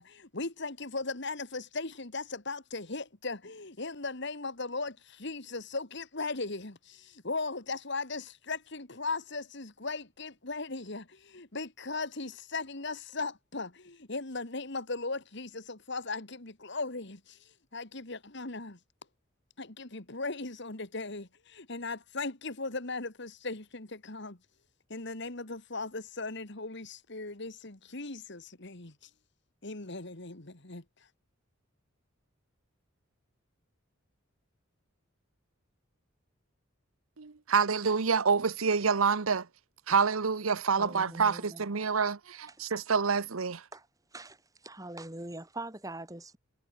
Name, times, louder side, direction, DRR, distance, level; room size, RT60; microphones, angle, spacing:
voice 1, 0.0-18.8 19.6-24.4 24.9-29.1 29.6-30.8, left 3 dB, 55° left, 2.4 m, -38 dB
voice 2, 37.2-39.5 39.9-43.6, right 5 dB, 90° right, 0.9 m, -27 dB
voice 3, 40.8-41.6 43.7-43.9 44.1-44.4 44.6-46.4, right 2 dB, 15° right, 2.9 m, -42 dB
head